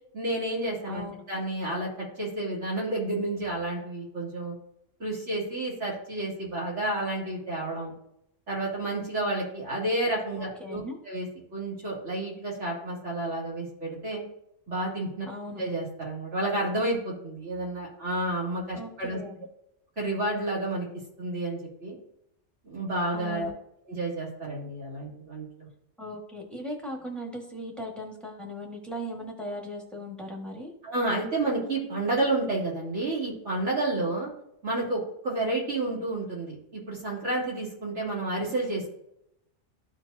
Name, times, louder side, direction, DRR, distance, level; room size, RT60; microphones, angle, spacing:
voice 1, 0.1-4.5 5.0-7.9 8.5-11.3 11.5-14.2 14.7-15.3 15.5-19.2 20.0-20.9 21.2-22.0 22.6-23.5 23.9-25.7 30.8-34.3 34.6-38.9, right 2 dB, 80° right, -5 dB, 3.1 m, -30 dB
voice 2, 0.9-1.2 10.4-11.0 15.2-15.6 18.7-19.5 23.1-23.5 26.0-30.7, equal, ahead, -1 dB, 1.3 m, -38 dB
13.5 x 4.5 x 2.6 m, 0.80 s
omnidirectional pair, 1.2 m